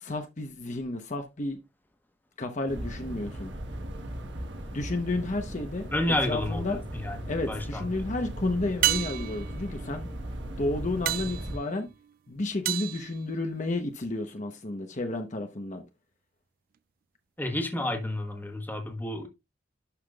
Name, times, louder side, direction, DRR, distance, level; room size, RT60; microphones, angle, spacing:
voice 1, 0.0-1.6 2.4-3.5 4.7-5.9 6.3-6.8 7.3-10.1 10.6-11.9 12.3-15.8, left 2 dB, 40° left, 0.9 m, -31 dB
sound 1, 2.7-11.6, right 1 dB, 80° right, 1.3 m, -38 dB
voice 2, 5.9-7.8 17.4-19.3, left 1 dB, 10° left, 1.3 m, -30 dB
sound 2, 8.8-14.0 18.4-18.5, right 14 dB, 50° right, 0.3 m, -33 dB
11.5 x 5.7 x 2.3 m
head